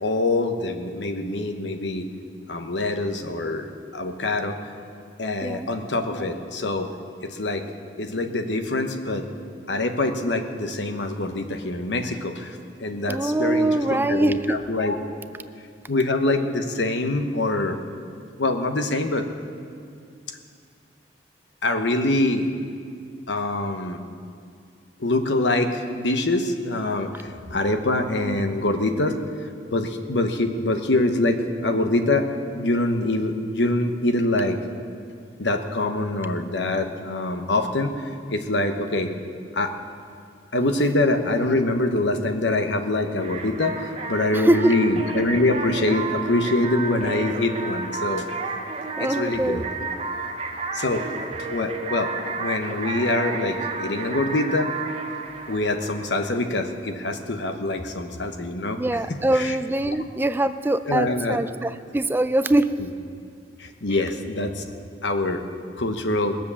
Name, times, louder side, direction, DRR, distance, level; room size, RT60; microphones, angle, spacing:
voice 1, 0.0-2.1 2.5-4.6 5.2-6.9 7.2-7.6 8.0-9.3 9.7-15.0 15.9-17.8 18.4-19.3 21.6-22.5 23.3-24.0 25.0-32.3 32.5-34.6 35.4-39.1 39.5-39.7 40.5-48.2 49.0-49.6 50.7-51.1 51.5-54.7 55.5-58.8 59.3-59.6 59.9-60.1 60.9-61.4 62.8-62.9 63.6-64.6 65.0-65.4 65.8-66.4, left 2 dB, 90° left, 6 dB, 1.1 m, -24 dB
voice 2, 13.1-14.6 28.2-28.4 44.3-44.7 49.0-49.6 58.8-62.7, right 1 dB, 10° right, 11 dB, 0.3 m, -23 dB
sound 1, 43.2-56.7, right 3 dB, 35° right, 1.0 m, -32 dB
20.5 x 7.5 x 7.1 m, 2.3 s
head